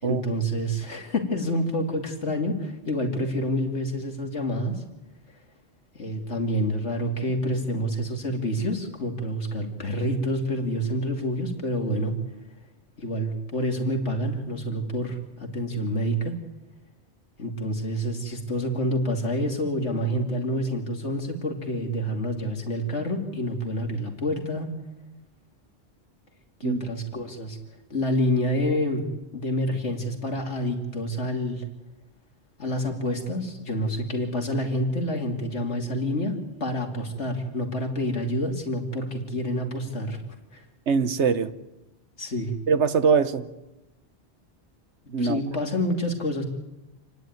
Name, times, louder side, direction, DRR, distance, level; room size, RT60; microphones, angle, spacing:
voice 1, 0.0-4.8 5.9-12.1 13.0-16.3 17.4-24.7 26.6-27.6 27.9-29.1 29.3-31.6 32.6-36.3 36.6-40.2 40.5-40.6 42.2-42.5 45.2-46.5, equal, 90° left, 3.0 m, -28 dB
voice 2, 40.9-41.5 42.7-43.5 45.1-45.4, right 5 dB, 80° right, 1.3 m, -22 dB
28.0 x 10.5 x 9.4 m
omnidirectional pair, 1.2 m